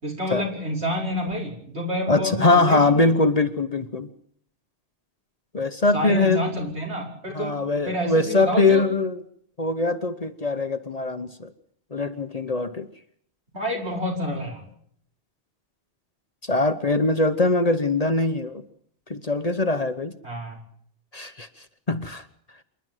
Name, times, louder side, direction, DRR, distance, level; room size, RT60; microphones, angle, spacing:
voice 1, 0.0-3.1 5.9-7.5 7.9-8.8 13.5-14.6 20.2-20.6, equal, 75° right, 0 dB, 5.7 m, -28 dB
voice 2, 2.1-4.1 5.5-6.4 7.3-9.2 9.6-11.5 11.9-12.9 16.5-18.6 19.1-20.1 21.1-21.5 21.9-22.2, left 3 dB, 35° left, 10 dB, 1.1 m, -22 dB
27.0 x 11.5 x 9.2 m, 0.64 s
omnidirectional pair, 1.1 m